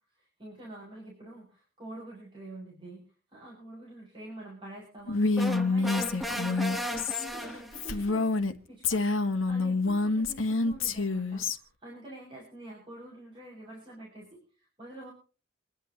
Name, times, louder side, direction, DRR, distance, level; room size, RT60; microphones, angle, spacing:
voice 1, 0.2-3.1 3.3-15.1, right 1 dB, 25° right, -5 dB, 7.2 m, -47 dB
Female speech woman speaking, 5.1-8.5 8.8-11.6, left 3 dB, 80° left, 1.5 m, -27 dB
sound 1, 5.4-8.0, equal, ahead, 1.1 m, -35 dB
28.0 x 11.0 x 3.1 m, 0.36 s
head